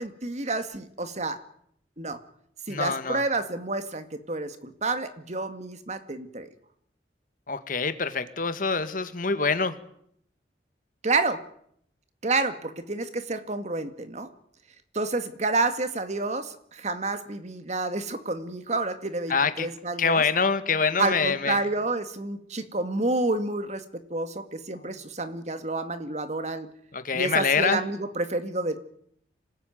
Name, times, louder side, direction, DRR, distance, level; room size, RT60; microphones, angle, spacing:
voice 1, 0.0-1.4 2.0-2.2 2.7-6.5 11.0-11.4 12.2-14.3 14.9-20.2 21.0-26.7 27.1-28.8, right 3 dB, 40° right, 10 dB, 2.1 m, -29 dB
voice 2, 2.7-3.2 7.5-9.7 19.3-19.7 20.0-21.6 26.9-27.8, left 5 dB, 50° left, 11 dB, 1.9 m, -25 dB
26.0 x 19.5 x 9.4 m, 0.69 s
head